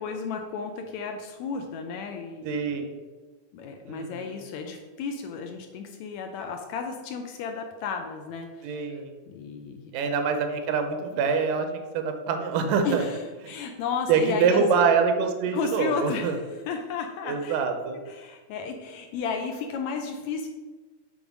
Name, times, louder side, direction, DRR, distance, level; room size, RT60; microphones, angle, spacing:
voice 1, 0.0-2.8 3.5-9.9 12.8-13.2 13.5-14.7 15.5-17.6 18.1-20.5, left 5 dB, 75° left, 4 dB, 1.8 m, -33 dB
voice 2, 2.4-2.9 3.9-4.4 8.6-9.1 9.9-13.0 13.4-13.5 14.1-16.4 17.3-18.0, right 5 dB, 85° right, 6 dB, 2.4 m, -25 dB
7.0 x 3.4 x 6.1 m, 1.3 s
omnidirectional pair, 3.6 m